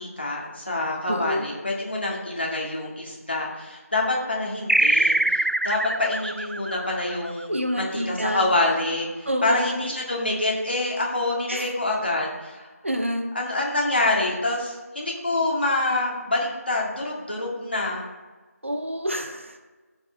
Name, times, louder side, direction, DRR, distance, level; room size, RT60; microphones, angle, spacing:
voice 1, 0.0-12.7 13.3-18.1, left 2 dB, 40° left, -3 dB, 2.0 m, -26 dB
voice 2, 1.1-1.5 7.5-8.5 9.3-9.9 11.5-11.7 12.8-13.3 18.6-19.6, equal, 50° right, 4 dB, 0.9 m, -28 dB
sound 1, 4.7-7.7, right 2 dB, 70° right, 0.5 m, -23 dB
14.0 x 4.8 x 3.6 m, 1.3 s
figure-of-eight pair, 175°, 9 cm